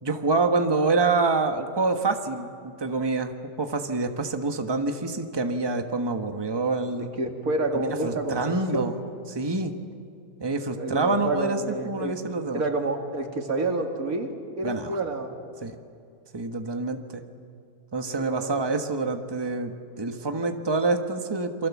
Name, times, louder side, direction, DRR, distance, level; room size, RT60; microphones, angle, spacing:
voice 1, 0.0-3.3 3.6-7.1 7.7-8.9 9.3-9.8 10.4-12.6 14.6-15.0 15.6-15.8 16.3-17.2 17.9-21.7, right 3 dB, 20° right, 5 dB, 1.3 m, -26 dB
voice 2, 7.1-8.9 10.7-12.1 12.5-14.3 14.6-15.3 18.1-18.5, right 2 dB, 90° right, 3 dB, 2.9 m, -29 dB
28.5 x 24.0 x 7.3 m, 2.5 s
omnidirectional pair, 1.5 m